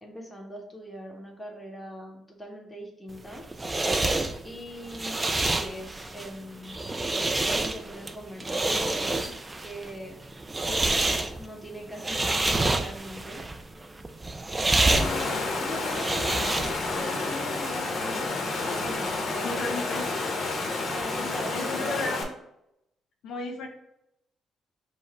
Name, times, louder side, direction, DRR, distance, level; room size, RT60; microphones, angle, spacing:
voice 1, 0.0-3.5 4.4-6.9 7.4-10.2 11.4-13.4 14.9-16.6 16.9-19.6 20.9-22.1, equal, 10° left, -1 dB, 1.2 m, -41 dB
sound 1, 3.1-17.0, right 2 dB, 20° right, 0.4 m, -28 dB
Water, 14.9-22.2, left 3 dB, 50° left, 0.9 m, -30 dB
voice 2, 19.4-20.1 21.5-22.3 23.2-23.7, left 2 dB, 75° left, 2 dB, 0.8 m, -33 dB
5.4 x 2.0 x 4.7 m, 0.81 s
cardioid pair, 90°, 0 cm